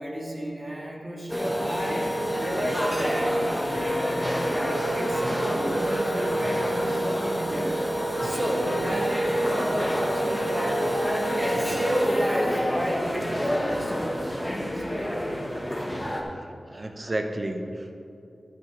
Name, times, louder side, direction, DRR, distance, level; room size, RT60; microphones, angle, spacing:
voice 1, 0.0-2.1 2.4-7.7 8.2-10.9 11.3-15.2 16.7-17.1, equal, 20° right, -2 dB, 2.2 m, -32 dB
sound 1, 1.3-16.2, equal, 5° left, 1.5 m, -27 dB
voice 2, 16.7-17.9, right 1 dB, 45° right, 5 dB, 1.1 m, -31 dB
12.5 x 8.7 x 3.4 m, 2.6 s
cardioid pair, 40°, 0 cm